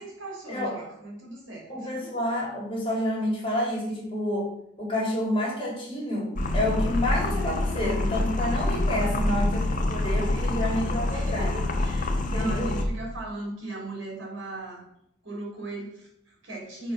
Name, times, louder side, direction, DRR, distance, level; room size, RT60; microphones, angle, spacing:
voice 1, 0.0-2.2 9.0-9.6 10.2-10.5 11.1-14.8 15.2-16.9, right 2 dB, 70° right, -1 dB, 3.7 m, -38 dB
voice 2, 1.7-4.5 4.8-11.6 12.2-12.7, left 1 dB, 25° left, -3 dB, 2.9 m, -29 dB
sound 1, 6.4-12.8, left 2 dB, 45° left, 1.1 m, -26 dB
6.8 x 5.1 x 6.0 m, 0.75 s
head